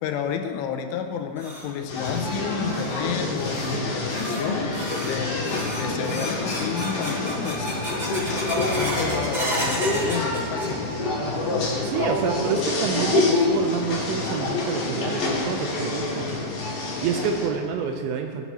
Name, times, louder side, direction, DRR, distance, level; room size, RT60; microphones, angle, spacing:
voice 1, 0.0-4.7 5.0-8.0 8.2-10.9, left 8 dB, 85° left, 6 dB, 3.1 m, -31 dB
sound 1, 1.0-11.1 11.4-12.0 12.4-12.5 13.2-13.3 14.9-15.0 15.5-15.6 16.0-16.1 16.6-16.7 17.2-17.6, equal, 50° right, 0.6 m, -33 dB
sound 2, 1.9-17.5, left 2 dB, 50° left, 2.9 m, -27 dB
voice 2, 11.8-16.4 17.0-18.5, right 6 dB, 80° right, 4 dB, 2.7 m, -28 dB
17.5 x 6.1 x 4.1 m, 2.6 s
omnidirectional pair, 5.6 m